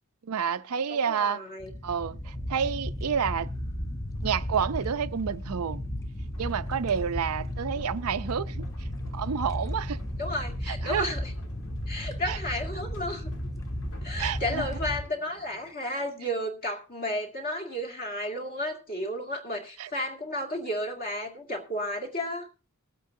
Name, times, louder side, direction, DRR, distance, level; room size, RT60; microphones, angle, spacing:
voice 1, 0.2-1.4 1.8-3.5 4.2-5.8 6.4-8.9 9.1-10.0 10.7-11.1 12.3-12.4 14.2-14.7 19.8-19.9, right 7 dB, 85° right, 0.5 m, -29 dB
voice 2, 0.9-1.7 10.2-11.3 11.9-13.3 14.0-22.5, left 1 dB, 40° left, 2.1 m, -33 dB
sound 1, 1.6-15.0, equal, 15° left, 0.8 m, -34 dB
sound 2, 6.3-15.7, left 2 dB, 85° left, 1.7 m, -55 dB
22.0 x 8.4 x 2.7 m
head